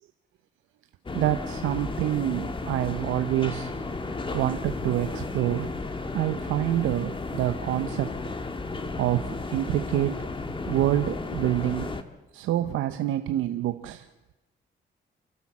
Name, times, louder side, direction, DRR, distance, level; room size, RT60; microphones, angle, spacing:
sound 1, 1.1-12.0, left 3 dB, 25° left, 1.6 m, -33 dB
voice 1, 1.1-3.7 4.0-5.7 6.1-8.2 9.0-10.3 10.6-11.9 12.3-14.1, right 13 dB, 85° right, 0.8 m, -27 dB
29.0 x 12.0 x 7.3 m
cardioid pair, 90°, 20 cm